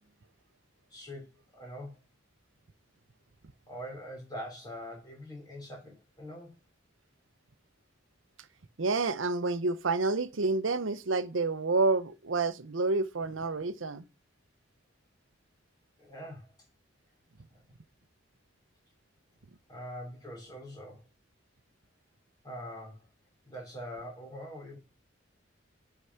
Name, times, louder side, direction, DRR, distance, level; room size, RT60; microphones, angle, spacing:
voice 1, 0.9-2.0 3.7-6.5 16.0-16.5 19.7-21.0 22.4-23.1 23.4-24.8, equal, 20° left, 4.3 m, -43 dB
voice 2, 8.8-14.0, right 3 dB, 80° right, 0.8 m, -29 dB
8.2 x 5.7 x 5.8 m
head